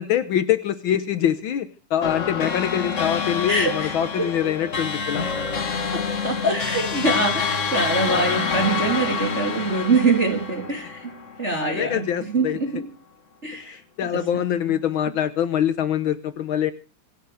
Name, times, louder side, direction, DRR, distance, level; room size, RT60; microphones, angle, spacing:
voice 1, 0.0-5.3 11.5-12.8 13.5-16.7, left 10 dB, 85° left, 12 dB, 1.1 m, -24 dB
sound 1, 2.0-11.7, left 5 dB, 55° left, 0.8 m, -27 dB
voice 2, 3.5-3.9 4.2-4.3 5.9-11.1 11.4-12.8 13.4-13.8 14.1-14.2, right 3 dB, 20° right, 2 dB, 3.2 m, -24 dB
26.0 x 9.1 x 4.8 m, 0.36 s
omnidirectional pair, 3.5 m